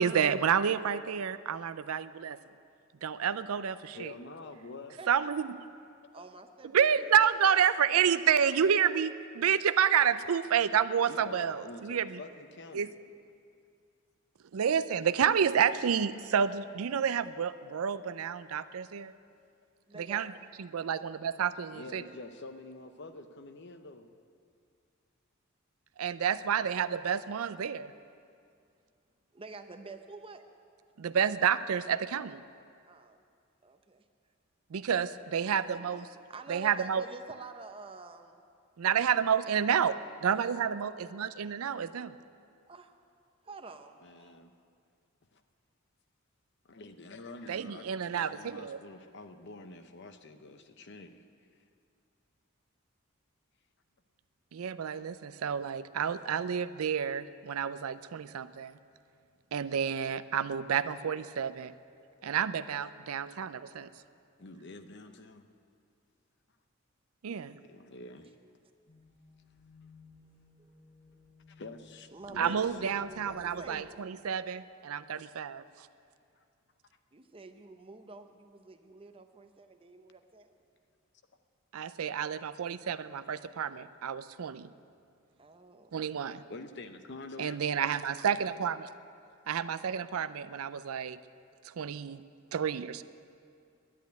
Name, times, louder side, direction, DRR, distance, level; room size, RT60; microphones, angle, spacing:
voice 1, 0.0-2.4 3.0-4.1 5.1-5.5 6.7-12.2 12.7-12.9 14.5-19.1 20.1-20.3 20.6-22.0 26.0-27.9 31.0-32.4 34.7-36.0 36.5-37.0 38.8-42.1 47.5-48.8 54.5-58.7 59.5-61.7 62.2-63.9 67.2-67.6 72.4-75.6 81.7-84.7 85.9-86.4 87.4-88.9 89.5-91.2 91.7-92.2 92.5-93.0, right 8 dB, 85° right, 14 dB, 0.4 m, -29 dB
voice 2, 3.9-5.0 11.1-12.9 21.7-24.1 44.0-44.5 45.3-45.4 46.6-51.3 64.4-65.5 67.3-67.4 67.6-68.3 71.5-72.8 86.5-87.6, left 2 dB, 55° left, 8 dB, 0.8 m, -47 dB
voice 3, 6.1-7.0 7.5-7.7 19.9-20.2 29.3-30.4 32.9-33.2 33.6-34.0 35.2-38.4 40.1-40.3 40.7-41.0 42.7-42.9 43.4-44.4 70.6-70.7 72.1-73.9 77.1-80.5 85.4-85.9, right 3 dB, 25° right, 7 dB, 0.7 m, -49 dB
sound 1, 68.9-73.9, left 3 dB, 75° left, 3.9 m, -57 dB
11.0 x 10.5 x 9.3 m, 2.3 s
head